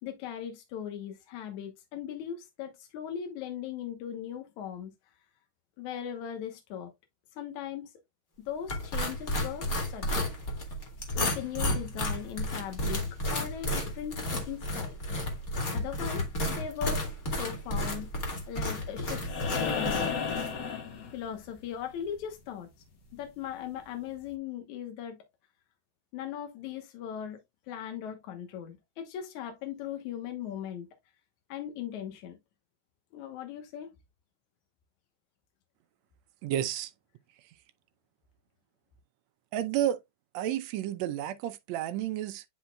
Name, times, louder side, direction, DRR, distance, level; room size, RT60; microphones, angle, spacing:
voice 1, 0.0-4.9 5.8-6.9 7.4-7.9 8.4-10.3 11.1-13.0 13.3-15.0 15.7-17.0 17.4-18.1 18.5-20.2 21.1-22.7 23.1-25.2 26.1-27.4 27.7-30.9 31.5-32.4 33.1-33.9, left 9 dB, 80° left, 2.5 m, -39 dB
sound 1, 8.7-20.5, left 1 dB, 35° left, 2.1 m, -32 dB
sound 2, 19.3-21.6 23.4-23.5, left 6 dB, 50° left, 1.4 m, -32 dB
voice 2, 36.4-36.9 39.5-40.0 40.3-42.4, right 11 dB, 75° right, 1.8 m, -31 dB
10.5 x 4.1 x 2.2 m
omnidirectional pair, 3.4 m